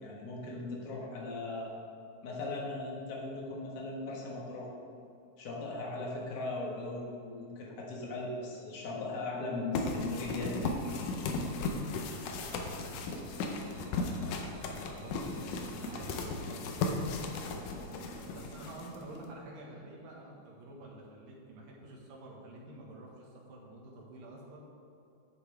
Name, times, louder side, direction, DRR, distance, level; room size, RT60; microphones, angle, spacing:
voice 1, 0.0-1.7 2.2-4.7 5.4-10.9, left 2 dB, 45° left, -2 dB, 1.5 m, -38 dB
sound 1, 9.7-19.3, left 3 dB, 75° left, 2.3 m, -36 dB
voice 2, 11.5-16.6 17.6-24.7, right 2 dB, 85° right, -3 dB, 3.2 m, -50 dB
sound 2, 11.8-21.5, right 3 dB, 60° right, 2.1 m, -57 dB
10.5 x 8.7 x 3.4 m, 2.8 s
omnidirectional pair, 3.8 m